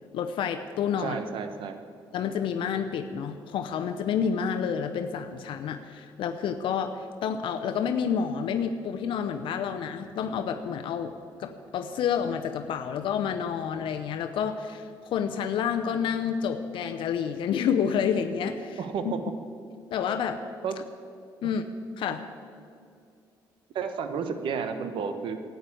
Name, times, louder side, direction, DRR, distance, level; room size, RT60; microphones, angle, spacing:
voice 1, 0.1-1.2 2.1-11.1 11.4-18.8 19.9-20.4 21.4-21.6 22.0-22.2, left 7 dB, 70° left, 7 dB, 0.7 m, -29 dB
voice 2, 1.0-1.8 18.8-19.2 20.6-20.7 22.1-22.2 23.7-25.4, right 6 dB, 70° right, 8 dB, 1.1 m, -32 dB
12.0 x 9.4 x 8.5 m, 2.4 s
cardioid pair, 85°, 9 cm